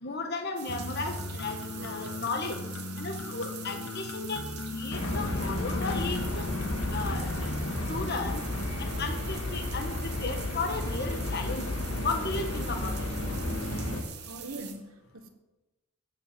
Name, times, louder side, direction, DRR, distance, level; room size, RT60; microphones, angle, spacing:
voice 1, 0.0-2.6 3.0-4.4 4.7-6.4 6.9-7.4 7.9-8.4 8.8-11.6 12.0-12.9, left 3 dB, 50° left, 1.3 m, -34 dB
sound 1, 0.6-14.7, right 9 dB, 50° right, 1.6 m, -44 dB
sound 2, 0.7-7.9, left 3 dB, 65° left, 0.8 m, -38 dB
sound 3, 4.9-14.0, left 2 dB, 80° left, 2.0 m, -32 dB
voice 2, 14.2-15.3, right 2 dB, 70° right, 1.4 m, -42 dB
16.0 x 6.8 x 7.6 m
head